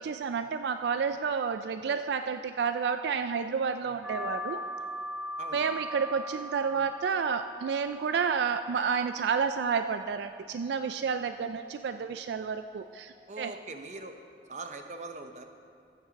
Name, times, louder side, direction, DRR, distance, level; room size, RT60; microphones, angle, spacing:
voice 1, 0.0-4.6 5.5-13.5, right 6 dB, 75° right, 9 dB, 0.3 m, -30 dB
sound 1, 4.0-13.1, equal, 5° right, 0.5 m, -42 dB
voice 2, 5.4-5.8 13.3-14.1 14.5-15.4, right 3 dB, 40° right, 6 dB, 0.7 m, -42 dB
15.0 x 8.7 x 4.0 m, 2.3 s
head